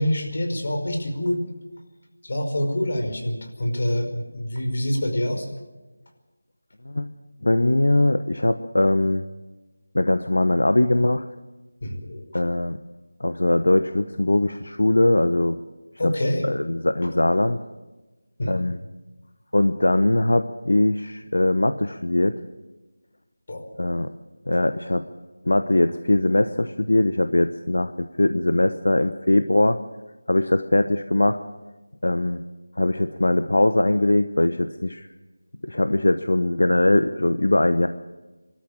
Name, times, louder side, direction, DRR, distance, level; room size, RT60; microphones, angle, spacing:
voice 1, 0.0-1.4 2.2-5.5 11.8-12.2 16.0-16.5 17.0-17.1 18.4-18.6 23.5-23.7, left 1 dB, 50° left, 4 dB, 5.2 m, -26 dB
voice 2, 7.4-9.2 9.9-11.3 12.3-12.8 13.2-15.5 16.0-16.1 16.4-17.6 18.5-18.8 19.5-22.4 23.8-24.1 24.5-25.0 25.5-29.8 30.3-31.4 32.0-32.4 32.8-35.1 35.6-37.9, left 1 dB, 80° left, 10 dB, 1.0 m, -21 dB
26.0 x 13.0 x 8.8 m, 1.2 s
figure-of-eight pair, 170°, 0 cm